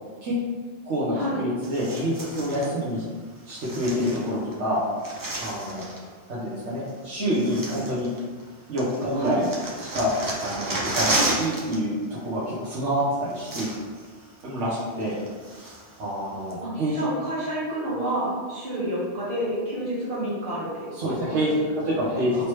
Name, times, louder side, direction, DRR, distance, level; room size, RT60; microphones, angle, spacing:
voice 1, 0.8-3.0 3.5-4.8 5.4-5.8 6.3-8.1 8.7-9.5 9.8-10.1 10.4-13.7 14.4-15.2 16.0-17.0 21.0-21.5 21.8-22.5, equal, 85° right, -9 dB, 1.1 m, -27 dB
sound 1, 1.6-2.7 3.5-4.5 4.8-6.1 6.9-7.0 7.3-8.5 8.8-11.8 12.0-12.3 13.0-13.1 13.3-14.1 14.4-14.5 15.0-16.0 16.5-16.6, right 2 dB, 30° right, 0.3 m, -32 dB
voice 2, 16.6-21.4 21.6-22.5, right 1 dB, 60° right, -9 dB, 1.6 m, -30 dB
3.3 x 3.1 x 3.0 m, 1.5 s
omnidirectional pair, 1.2 m